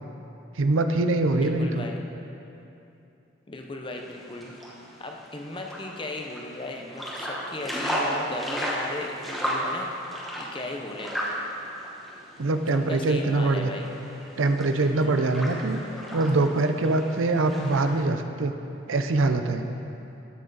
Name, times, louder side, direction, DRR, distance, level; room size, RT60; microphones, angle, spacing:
voice 1, 0.6-1.9 12.4-13.7 14.4-15.8 16.1-18.5 18.9-19.7, right 2 dB, 80° right, 8 dB, 0.6 m, -23 dB
voice 2, 1.3-2.0 3.5-4.5 5.0-11.1 12.9-13.9 14.8-15.1, left 2 dB, 25° left, 2 dB, 0.7 m, -37 dB
sound 1, 4.0-18.0, equal, ahead, 1.1 m, -34 dB
13.0 x 6.3 x 4.0 m, 2.8 s
head